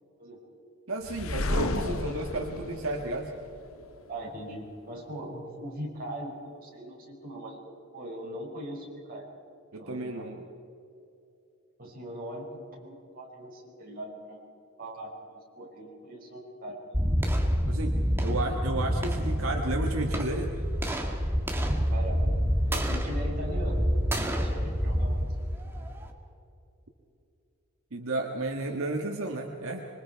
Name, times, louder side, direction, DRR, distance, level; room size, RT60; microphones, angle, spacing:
voice 1, 0.9-3.3 9.7-10.4 17.7-20.5 27.9-29.9, right 2 dB, 80° right, 2 dB, 1.6 m, -32 dB
sound 1, 1.0-4.0, left 2 dB, 80° left, 1.2 m, -32 dB
voice 2, 4.1-7.7 7.9-9.2 9.8-10.3 11.8-14.4 14.8-17.0 21.9-25.3, right 1 dB, 45° right, -2 dB, 6.1 m, -40 dB
sound 2, 16.9-26.1, equal, 10° right, 2.0 m, -27 dB
26.0 x 23.5 x 4.6 m, 2.7 s
head